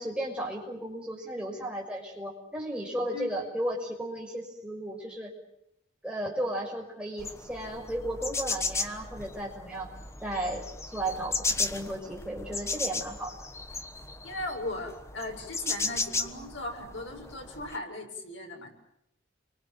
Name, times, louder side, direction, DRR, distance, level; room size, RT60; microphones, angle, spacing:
voice 1, 0.0-5.3 6.0-9.9 10.2-10.6 10.9-13.3, right 1 dB, 5° right, -1 dB, 6.0 m, -34 dB
sound 1, 7.2-17.8, left 3 dB, 15° left, 1.2 m, -35 dB
voice 2, 14.2-18.7, left 2 dB, 85° left, 2 dB, 7.4 m, -37 dB
29.0 x 24.5 x 7.9 m, 0.80 s
head